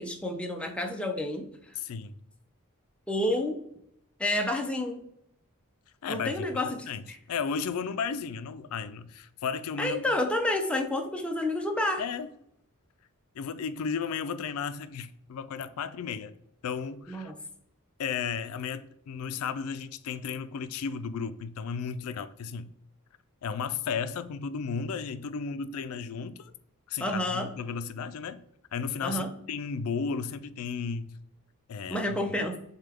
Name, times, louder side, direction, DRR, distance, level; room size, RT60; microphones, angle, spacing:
voice 1, 0.0-1.8 3.1-3.6 4.2-5.0 6.1-7.2 9.8-12.0 17.1-17.4 27.0-27.5 29.0-29.3 31.9-32.6, left 1 dB, 5° left, 0.5 m, -30 dB
voice 2, 1.8-2.2 6.0-10.0 12.0-12.3 13.3-16.4 16.6-17.3 18.0-22.7 23.4-26.5 26.9-28.4 28.7-31.2 31.7-32.2, left 6 dB, 70° left, 0.4 m, -34 dB
6.7 x 2.2 x 3.4 m
head